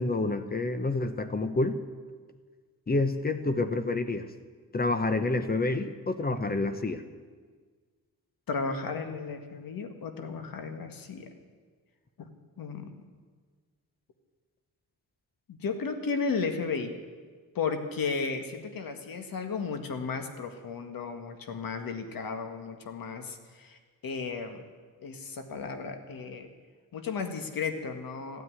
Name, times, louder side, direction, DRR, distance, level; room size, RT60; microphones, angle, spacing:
voice 1, 0.0-1.8 2.9-4.3 4.7-7.0, left 2 dB, 25° left, 10 dB, 0.9 m, -28 dB
voice 2, 8.5-11.3 12.2-12.3 12.6-13.0 15.5-16.9 17.6-23.8 24.0-24.6 25.0-26.5 26.9-28.4, left 5 dB, 75° left, 6 dB, 1.8 m, -34 dB
14.5 x 9.6 x 9.7 m, 1.5 s
wide cardioid pair, 125°, 35 cm